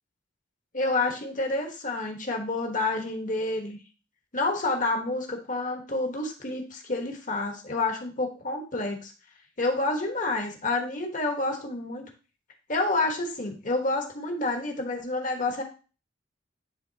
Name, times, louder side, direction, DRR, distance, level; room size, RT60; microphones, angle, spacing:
voice 1, 0.7-3.8 4.3-9.1 9.6-12.1 12.7-15.6, left 2 dB, 40° left, 3 dB, 1.3 m, -29 dB
10.5 x 3.6 x 2.8 m, 0.34 s
head